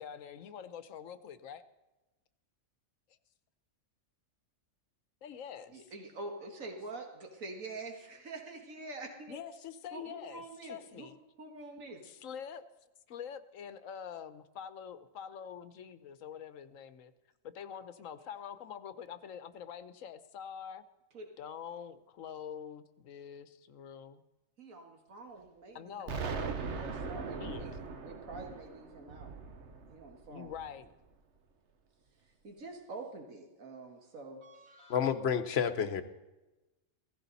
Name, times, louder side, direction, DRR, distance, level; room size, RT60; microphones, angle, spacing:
voice 1, 0.0-1.6 5.2-5.9 9.3-11.1 12.0-12.6 13.1-17.1 17.4-20.8 21.4-24.2 25.7-26.2 27.4-27.6 30.3-30.9, left 8 dB, 75° left, 13 dB, 1.2 m, -45 dB
voice 2, 5.7-9.4 9.9-11.1 11.4-12.0 21.1-21.3 24.6-27.7 28.0-29.3 29.9-30.5 32.4-35.1, right 3 dB, 85° right, 3 dB, 2.2 m, -46 dB
Explosion, 26.1-30.9, right 5 dB, 60° right, 1.3 m, -40 dB
voice 3, 34.9-36.0, left 7 dB, 55° left, 12 dB, 1.1 m, -29 dB
16.5 x 15.0 x 4.1 m, 1.1 s
omnidirectional pair, 1.4 m